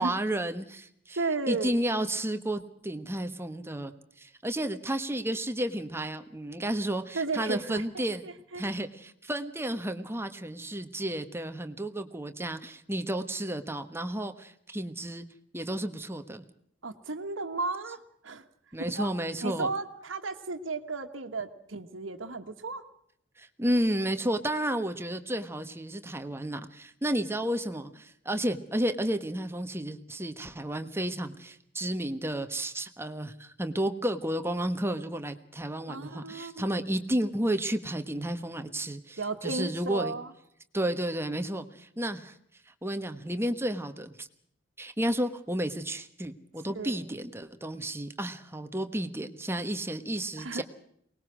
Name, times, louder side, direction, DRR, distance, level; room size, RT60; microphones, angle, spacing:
voice 1, 0.0-1.2 1.5-8.2 8.5-15.2 15.5-16.4 18.7-19.7 23.4-40.1 40.7-42.3 42.8-44.3 44.8-50.6, right 1 dB, 15° right, 8 dB, 1.3 m, -32 dB
voice 2, 1.2-1.7 7.1-7.8 8.2-8.6 16.8-18.0 18.2-18.4 19.0-19.1 19.4-22.8 35.9-36.7 39.2-40.3 46.7-47.0 50.4-50.6, right 3 dB, 85° right, 3 dB, 1.5 m, -34 dB
23.5 x 19.5 x 6.2 m, 0.70 s
head